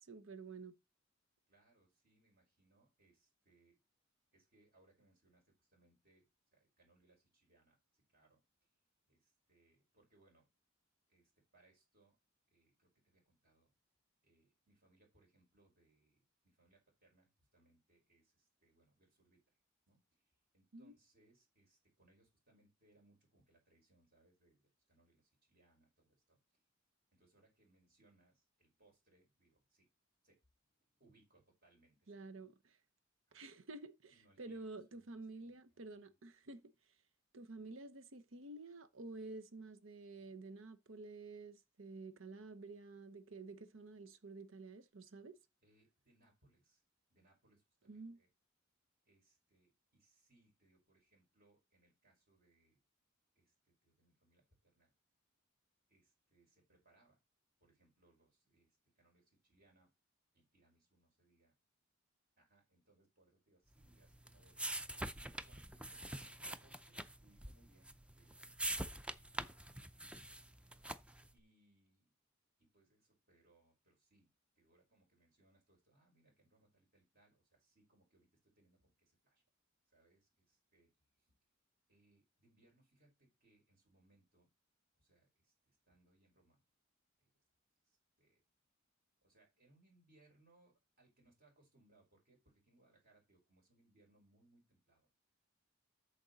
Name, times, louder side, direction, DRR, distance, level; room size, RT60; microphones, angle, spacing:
voice 1, 0.1-0.7 20.7-20.9 32.1-32.8 33.3-36.6 37.3-45.4 47.9-48.2, right 3 dB, 80° right, 0.9 m, -51 dB
voice 2, 1.5-3.8 4.3-8.4 9.1-10.5 11.1-12.2 12.5-13.7 14.2-19.6 19.9-26.4 27.1-29.9 30.2-30.4 30.9-32.1 33.3-33.4 34.1-34.7 34.9-35.8 36.1-36.2 45.6-46.8 47.1-48.3 49.0-52.8 53.3-54.9 55.9-57.2 57.6-59.9 60.3-61.5 62.4-64.6 65.2-69.4 69.8-70.3 71.3-72.1 72.6-79.4 79.9-81.3 81.9-84.5 85.0-86.6 87.2-87.3 87.8-88.4 89.2-95.1, right 2 dB, 50° right, 5.1 m, -73 dB
sound 1, 63.8-71.3, right 1 dB, 5° right, 0.5 m, -45 dB
8.7 x 7.0 x 4.0 m
head